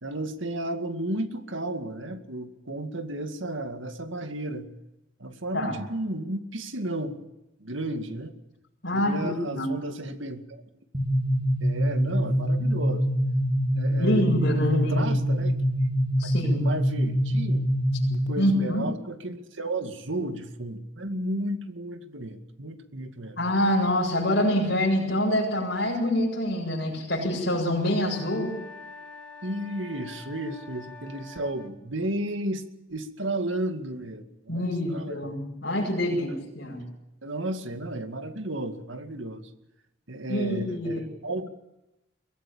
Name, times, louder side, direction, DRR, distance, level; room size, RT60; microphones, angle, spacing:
voice 1, 0.0-4.7 5.2-7.2 7.6-8.3 8.9-10.6 11.6-13.1 13.7-15.6 16.2-17.6 18.1-23.5 29.4-35.3 36.3-36.4 37.2-39.5 40.1-41.5, right 1 dB, 70° right, 8 dB, 2.3 m, -33 dB
voice 2, 8.8-9.7 14.0-15.1 16.2-16.7 18.4-18.8 23.4-28.6 34.5-36.3 36.6-36.8 40.3-41.0, left 1 dB, 55° left, -2 dB, 7.5 m, -26 dB
sound 1, 10.9-18.5, equal, 25° right, 3.0 m, -25 dB
sound 2, 27.8-31.8, left 3 dB, 5° left, 3.1 m, -45 dB
23.0 x 17.0 x 8.7 m, 0.92 s
head